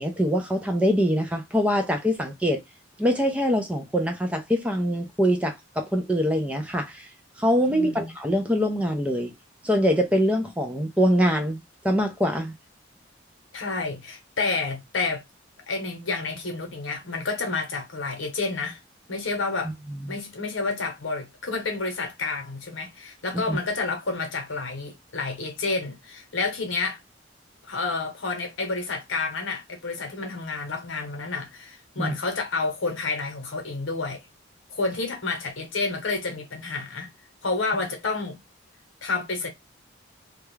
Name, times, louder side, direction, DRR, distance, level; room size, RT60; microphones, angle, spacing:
voice 1, 0.0-2.6 3.0-7.1 7.4-9.3 9.6-12.5 19.9-20.2 23.5-23.6 32.0-32.1, equal, 5° right, 0.4 m, -24 dB
voice 2, 7.7-8.1 13.5-15.2 15.7-18.8 19.1-19.7 20.1-27.0 27.6-34.2 34.7-37.1 37.4-38.4 39.0-39.5, left 3 dB, 80° left, 0.9 m, -29 dB
2.3 x 2.1 x 3.1 m
head